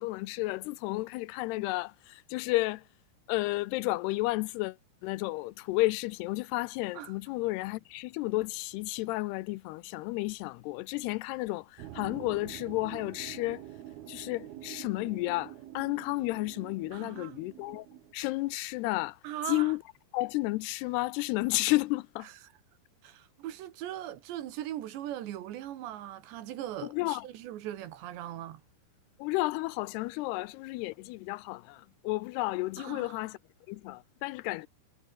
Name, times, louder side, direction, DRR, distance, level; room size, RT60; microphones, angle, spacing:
voice 1, 0.0-2.8 3.3-4.8 5.0-13.6 14.1-17.9 18.1-19.2 19.5-19.8 20.1-22.3 26.8-27.3 29.2-33.4 33.7-34.7, left 20 dB, 85° left, 2.6 m, -32 dB
sound 1, 11.8-18.1, right 12 dB, 70° right, 3.2 m, -47 dB
voice 2, 16.9-17.4 19.2-19.7 23.0-28.6 32.8-33.1, right 12 dB, 90° right, 4.0 m, -40 dB
omnidirectional pair, 4.9 m